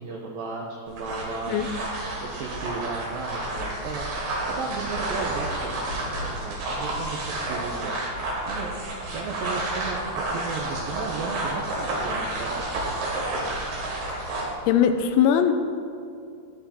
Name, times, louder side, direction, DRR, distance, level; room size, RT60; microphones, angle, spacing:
voice 1, 0.0-1.6 2.2-4.1 4.5-7.9 8.5-8.7 9.1-10.0 10.3-13.0, right 4 dB, 80° right, -2 dB, 2.0 m, -34 dB
sound 1, 0.9-14.5, right 1 dB, 65° right, 4.3 m, -30 dB
voice 2, 14.2-15.5, left 9 dB, 85° left, 8 dB, 3.0 m, -21 dB
15.0 x 11.5 x 2.9 m, 2.4 s
omnidirectional pair, 5.2 m